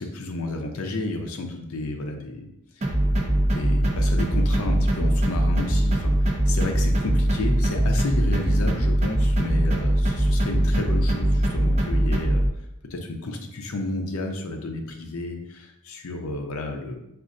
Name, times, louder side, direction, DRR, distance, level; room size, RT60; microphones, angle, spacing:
voice 1, 0.0-2.5 2.8-2.9 3.2-12.4 12.9-16.9, left 2 dB, 80° left, 3 dB, 0.5 m, -31 dB
sound 1, 2.8-12.5, right 1 dB, 30° right, 0.4 m, -22 dB
6.2 x 2.5 x 2.5 m, 0.83 s
head